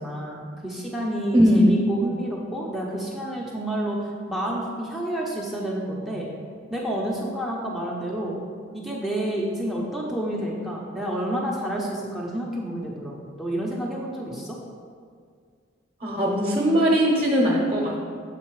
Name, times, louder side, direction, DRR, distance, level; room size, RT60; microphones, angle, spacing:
voice 1, 0.0-6.3 6.7-8.4 8.7-14.6, right 1 dB, ahead, -4 dB, 0.6 m, -29 dB
voice 2, 1.3-1.8 16.0-18.0, equal, 30° right, -2 dB, 0.8 m, -19 dB
7.4 x 3.9 x 4.6 m, 2.1 s
head